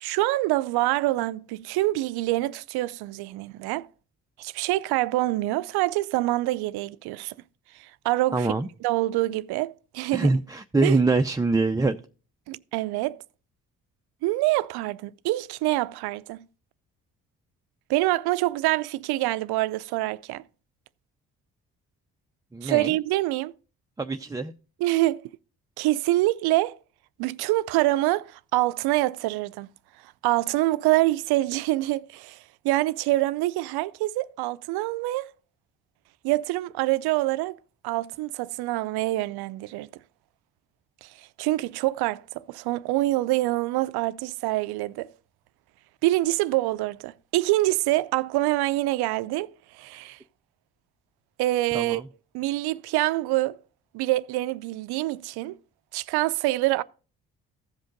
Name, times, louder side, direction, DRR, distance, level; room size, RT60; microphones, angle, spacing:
voice 1, 0.0-3.9 4.4-7.3 7.7-8.5 8.8-10.3 10.8-11.0 12.5-13.2 14.2-16.5 17.9-20.4 22.6-23.5 24.8-25.2 25.8-26.8 27.2-29.7 30.0-35.3 36.2-37.6 37.8-39.9 41.0-45.1 46.0-50.2 51.4-52.0 52.3-53.6 53.9-55.6 55.9-56.8, right 17 dB, 70° right, 0.5 m, -26 dB
voice 2, 8.3-8.7 10.1-12.0 22.5-22.9 24.0-24.5 51.7-52.0, right 3 dB, 10° right, 0.4 m, -24 dB
15.0 x 5.2 x 3.8 m
hypercardioid pair, 50°, 39 cm